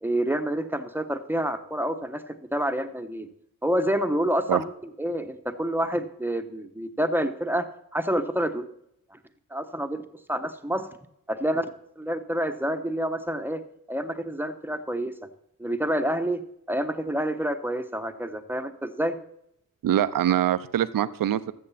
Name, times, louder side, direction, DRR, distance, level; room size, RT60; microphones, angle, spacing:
voice 1, 0.0-3.3 3.6-4.7 5.0-7.7 7.9-8.6 9.1-9.2 9.5-10.0 10.3-10.9 11.3-11.7 12.0-13.6 13.9-15.3 15.6-16.4 16.7-19.2, right 1 dB, 5° right, 8 dB, 1.1 m, -28 dB
voice 2, 19.8-21.5, right 11 dB, 65° right, 15 dB, 0.7 m, -23 dB
14.0 x 6.9 x 4.2 m, 0.77 s
cardioid pair, 50°, 36 cm